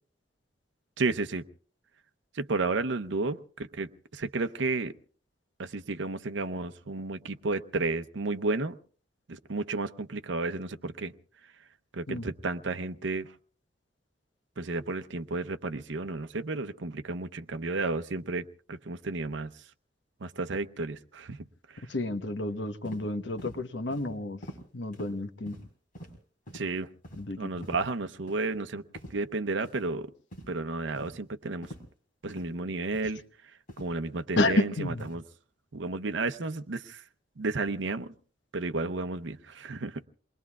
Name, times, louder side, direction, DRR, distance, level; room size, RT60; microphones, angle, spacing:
voice 1, 1.0-1.4 2.3-4.9 5.6-8.7 9.3-11.1 11.9-13.3 14.6-19.5 20.2-21.4 21.7-21.8 26.5-26.9 27.3-28.8 29.1-30.1 30.5-31.7 32.2-33.2 33.8-35.2 35.7-37.0 37.4-38.1 38.5-40.0, right 3 dB, 85° right, 0.7 m, -32 dB
voice 2, 21.9-24.4 24.7-25.6 27.2-27.5 34.4-35.0, left 2 dB, 75° left, 1.1 m, -30 dB
sound 1, 22.8-23.0 23.4-23.6 23.9-24.1 24.4-24.6 24.9-25.1 25.5-25.6 25.9-26.1 26.5-26.6 27.0-27.2 27.6-27.8 28.3-28.5 28.9-29.1 29.6-29.8 30.3-30.5 30.9-31.1 31.6-31.8 32.3-32.5 32.9-33.1 33.7-33.9 34.4-34.6 35.0-35.1, equal, 50° left, 4.7 m, -44 dB
28.5 x 21.5 x 2.4 m
head